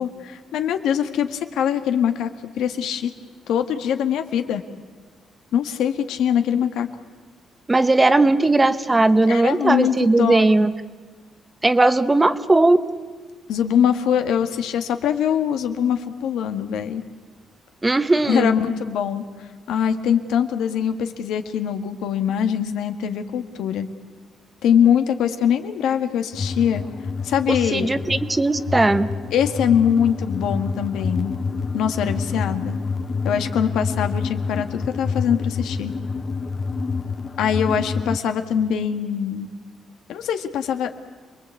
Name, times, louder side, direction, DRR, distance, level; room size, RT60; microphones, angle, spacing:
voice 1, 0.0-2.3 2.6-3.1 3.5-4.6 5.5-6.9 9.3-10.7 13.5-17.0 18.3-19.2 19.7-23.9 24.6-26.8 27.2-27.9 29.3-31.3 31.7-32.8 33.2-35.9 37.4-39.5 40.1-40.9, left 8 dB, 90° left, 8 dB, 1.7 m, -22 dB
voice 2, 7.7-10.7 11.6-12.8 17.8-18.5 27.5-29.1, right 2 dB, 15° right, 12 dB, 0.9 m, -18 dB
sound 1, 26.3-38.2, left 4 dB, 30° left, 0.7 m, -28 dB
27.5 x 21.0 x 8.4 m, 1.4 s
cardioid pair, 130°, 0 cm